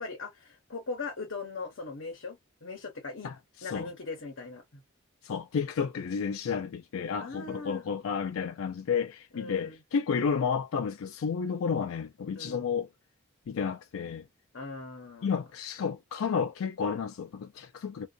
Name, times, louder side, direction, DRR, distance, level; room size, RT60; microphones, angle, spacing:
voice 1, 0.0-3.3 3.6-4.8 7.2-7.8 9.3-9.8 12.4-12.7 14.5-15.3, left 3 dB, 60° left, 0.9 m, -40 dB
voice 2, 3.2-3.9 5.2-12.9 13.5-14.2 15.2-18.1, left 6 dB, 80° left, 0.4 m, -31 dB
2.5 x 2.3 x 2.4 m
head